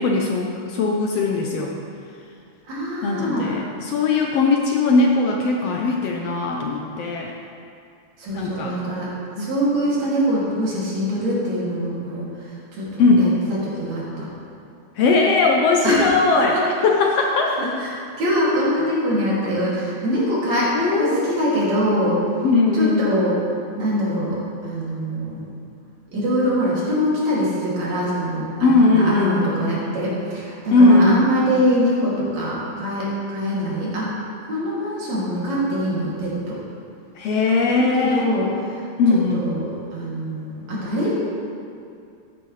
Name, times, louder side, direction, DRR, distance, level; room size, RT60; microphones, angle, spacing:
voice 1, 0.0-1.7 3.0-7.3 8.3-8.8 9.4-9.5 13.0-13.4 15.0-16.6 16.8-17.6 20.7-21.4 22.4-23.0 28.6-29.5 30.7-31.2 37.2-38.3 39.0-39.4, left 3 dB, 70° left, 0 dB, 1.6 m, -19 dB
voice 2, 2.7-3.5 8.2-9.1 9.4-12.3 12.7-13.3 13.6-14.3 15.8-16.1 17.6-22.2 22.7-23.3 23.8-25.4 26.1-34.1 34.5-36.6 37.9-38.5 38.8-38.9 39.1-41.1, equal, 70° right, -7 dB, 3.9 m, -23 dB
14.0 x 9.9 x 3.2 m, 2.4 s
omnidirectional pair, 3.3 m